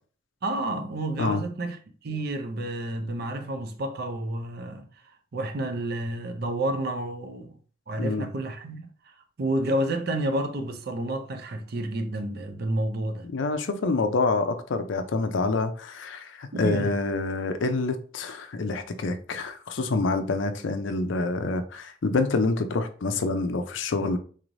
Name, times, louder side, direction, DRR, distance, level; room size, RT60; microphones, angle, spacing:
voice 1, 0.4-1.8 2.0-4.9 5.3-7.5 7.9-13.3 16.5-17.0, right 1 dB, 50° right, 0.5 m, -30 dB
voice 2, 13.3-24.2, left 3 dB, 65° left, 0.5 m, -27 dB
3.9 x 3.1 x 2.5 m
head